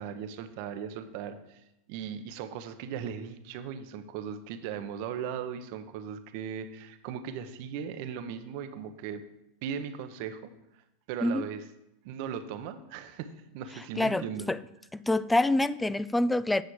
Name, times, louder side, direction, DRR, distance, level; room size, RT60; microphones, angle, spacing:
voice 1, 0.0-1.6 1.9-9.2 9.6-10.5 11.1-11.6 12.0-14.5, right 8 dB, 60° right, 10 dB, 0.8 m, -38 dB
voice 2, 14.0-14.6 14.9-16.6, left 2 dB, 10° left, 17 dB, 0.3 m, -26 dB
8.6 x 6.4 x 4.8 m, 0.86 s
hypercardioid pair, 100°, 0 cm